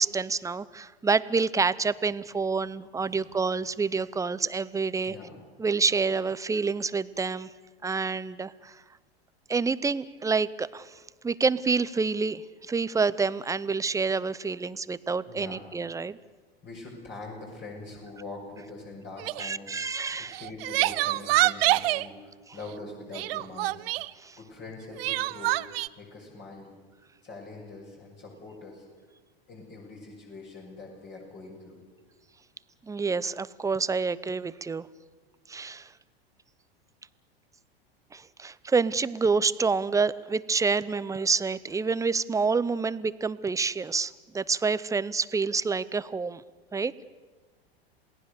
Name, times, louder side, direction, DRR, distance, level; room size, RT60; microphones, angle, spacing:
voice 1, 0.0-5.1 5.6-7.5 7.8-8.7 9.5-10.9 11.2-16.2 19.4-20.4 24.2-24.4 32.9-34.9 35.5-35.9 38.1-46.4 46.7-46.9, right 4 dB, 10° right, 17 dB, 0.6 m, -28 dB
voice 2, 3.0-3.3 5.0-5.3 15.3-15.7 16.6-19.7 20.1-23.9 24.4-25.6 26.0-26.7 27.2-28.9 29.5-31.8, left 3 dB, 35° left, -1 dB, 6.9 m, -43 dB
Crying sobbing, 19.2-19.5 20.3-22.1 23.1-24.1 25.0-25.9, right 18 dB, 70° right, 0.7 m, -26 dB
28.0 x 18.0 x 6.9 m, 1.3 s
hypercardioid pair, 100°, 31 cm